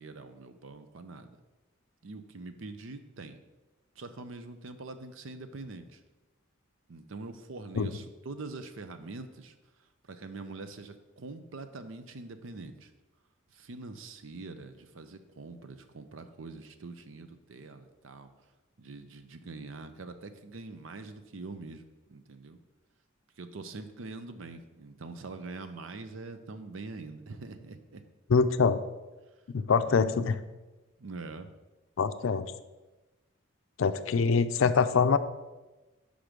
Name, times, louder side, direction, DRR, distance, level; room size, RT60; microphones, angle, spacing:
voice 1, 0.0-1.4 2.0-3.4 4.0-6.0 6.9-9.5 10.1-12.9 13.5-18.3 18.8-22.6 23.4-28.0 29.8-30.2 31.0-31.5, right 3 dB, 75° right, 9 dB, 0.6 m, -44 dB
voice 2, 28.3-28.8 29.5-30.4 32.0-32.5 33.8-35.2, left 5 dB, 75° left, 11 dB, 0.4 m, -24 dB
6.0 x 5.1 x 5.1 m, 1.1 s
head